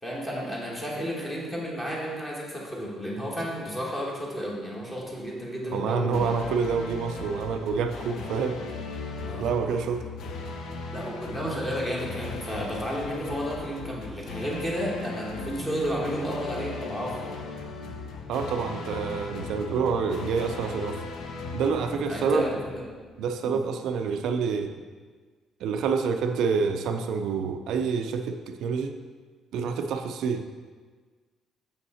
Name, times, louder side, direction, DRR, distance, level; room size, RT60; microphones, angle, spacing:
voice 1, 0.0-6.3 9.3-9.4 10.9-17.3 22.1-22.8 23.4-23.5, equal, 10° left, -4 dB, 1.2 m, -32 dB
voice 2, 5.7-8.7 9.4-10.1 18.3-21.0 21.5-22.5 23.2-24.8 25.6-29.0 29.5-30.5, right 5 dB, 65° right, 6 dB, 0.4 m, -27 dB
sound 1, 6.1-23.2, left 3 dB, 55° left, 0.6 m, -38 dB
6.5 x 5.4 x 4.2 m, 1.5 s
cardioid pair, 175°, 0 cm